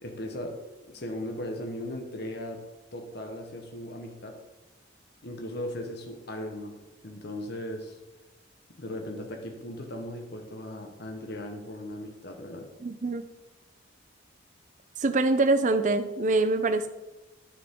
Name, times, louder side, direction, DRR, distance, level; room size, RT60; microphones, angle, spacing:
voice 1, 0.0-2.6 2.9-4.4 5.2-6.8 7.0-8.0 8.8-12.7, left 1 dB, 55° left, 4 dB, 1.0 m, -37 dB
voice 2, 12.8-13.2 15.0-16.9, right 2 dB, 40° right, 9 dB, 0.5 m, -24 dB
9.7 x 7.1 x 3.6 m, 1.1 s
head